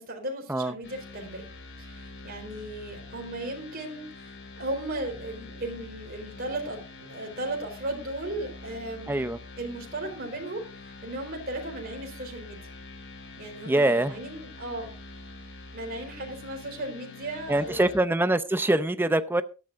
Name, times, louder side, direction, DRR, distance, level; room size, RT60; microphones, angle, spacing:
voice 1, 0.0-1.4 1.8-9.3 9.6-12.6 13.4-14.9 15.7-17.9, right 1 dB, 45° right, 4.2 m, -36 dB
sound 1, 0.8-18.0, left 3 dB, 55° left, 6.1 m, -45 dB
voice 2, 9.1-9.4 13.7-14.1 17.5-19.4, right 1 dB, 10° right, 0.6 m, -24 dB
18.0 x 13.0 x 2.6 m
head